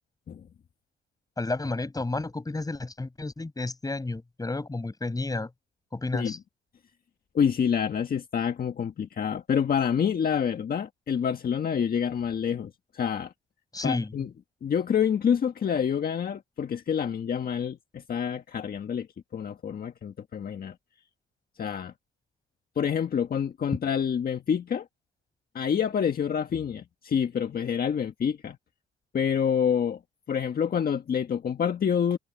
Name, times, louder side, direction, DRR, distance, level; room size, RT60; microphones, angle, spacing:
voice 1, 1.4-5.5 5.9-6.4 13.7-14.1, left 2 dB, 20° left, 7.7 m, -31 dB
voice 2, 7.3-13.3 13.8-14.3 14.6-19.1 19.3-20.7 21.6-21.9 22.7-24.9 25.5-28.6 29.1-30.0 30.3-32.2, left 7 dB, 50° left, 1.6 m, -27 dB
cardioid pair, 90°, 20 cm